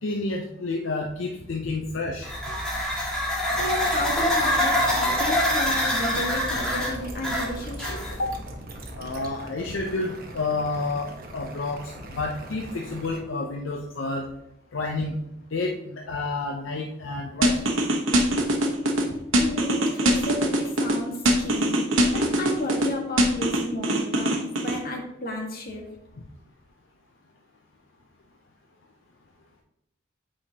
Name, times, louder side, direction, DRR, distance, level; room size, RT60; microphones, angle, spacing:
voice 1, 0.0-2.3 8.2-8.4 9.0-14.3 14.7-15.2 15.5-17.6, left 3 dB, 70° left, 1 dB, 0.6 m, -30 dB
sound 1, 2.2-8.4, left 1 dB, 5° left, 1.8 m, -25 dB
voice 2, 3.5-8.0 19.4-25.8, left 1 dB, 50° left, 1 dB, 1.4 m, -33 dB
sound 2, 3.5-13.2, right 2 dB, 50° right, 1.0 m, -40 dB
sound 3, 17.4-19.0 19.3-21.0 21.3-22.9 23.2-24.8, right 1 dB, 80° right, 1.0 m, -22 dB
8.4 x 5.0 x 2.8 m, 0.83 s
head